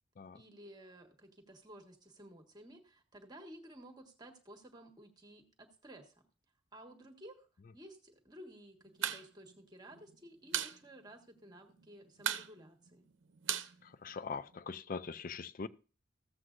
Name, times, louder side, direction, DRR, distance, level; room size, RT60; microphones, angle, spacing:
voice 1, 0.3-6.1 6.7-7.5 7.7-13.1, right 1 dB, 20° right, 1.4 m, -54 dB
sound 1, 8.9-9.2 9.5-9.6 9.9-10.8 11.1-11.2 11.5-11.9 12.2-14.6, right 10 dB, 90° right, 0.7 m, -37 dB
voice 2, 13.8-15.7, left 5 dB, 50° left, 0.5 m, -42 dB
15.0 x 7.8 x 2.5 m
head